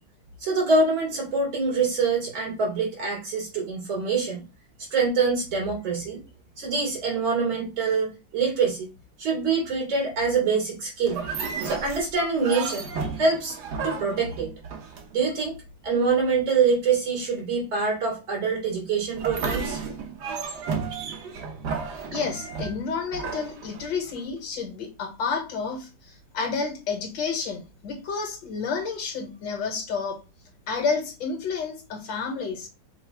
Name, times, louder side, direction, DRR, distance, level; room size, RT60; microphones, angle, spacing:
voice 1, 0.4-4.4 4.9-6.2 6.6-8.9 9.2-11.2 11.6-12.9 13.2-13.6 13.8-14.5 15.1-15.5 15.8-19.8, right 4 dB, 85° right, -3 dB, 3.2 m, -25 dB
sound 1, 11.1-15.4 19.1-24.2, right 5 dB, 65° right, 1.4 m, -33 dB
voice 2, 22.1-30.2 30.7-32.7, left 5 dB, 70° left, 4 dB, 1.9 m, -30 dB
5.7 x 2.0 x 4.6 m, 0.30 s
omnidirectional pair, 2.1 m